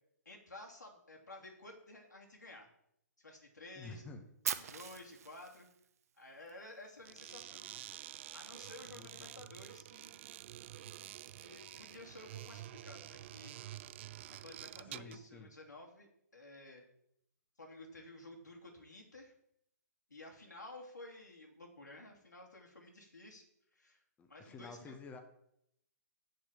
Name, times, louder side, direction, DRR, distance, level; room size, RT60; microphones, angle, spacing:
voice 1, 0.2-2.7 3.2-4.0 4.6-5.7 6.2-7.7 8.3-10.2 11.2-13.6 14.4-16.9 17.6-19.3 20.1-23.4 23.7-24.0 24.3-25.0, left 2 dB, 90° left, 0 dB, 3.0 m, -53 dB
voice 2, 3.8-4.2 8.9-9.3 14.8-15.5 24.2-25.2, left 3 dB, 15° left, 6 dB, 1.0 m, -50 dB
Fire, 4.4-6.5, right 8 dB, 60° right, 0.9 m, -41 dB
sound 1, 7.0-15.3, right 13 dB, 40° right, 0.3 m, -49 dB
8.0 x 6.5 x 7.5 m, 0.75 s
figure-of-eight pair, 130°, 9 cm